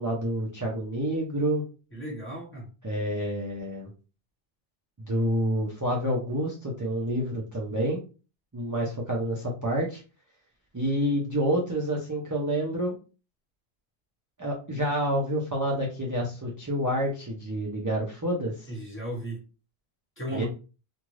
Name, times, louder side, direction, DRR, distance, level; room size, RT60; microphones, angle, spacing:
voice 1, 0.0-1.6 2.8-3.9 5.0-8.0 8.5-10.0 10.7-13.0 14.4-18.7 20.3-20.4, equal, 20° right, -4 dB, 0.5 m, -28 dB
voice 2, 1.9-2.7 18.7-19.4 20.2-20.5, right 1 dB, 10° left, -3 dB, 1.1 m, -35 dB
2.6 x 2.3 x 3.1 m, 0.33 s
omnidirectional pair, 1.1 m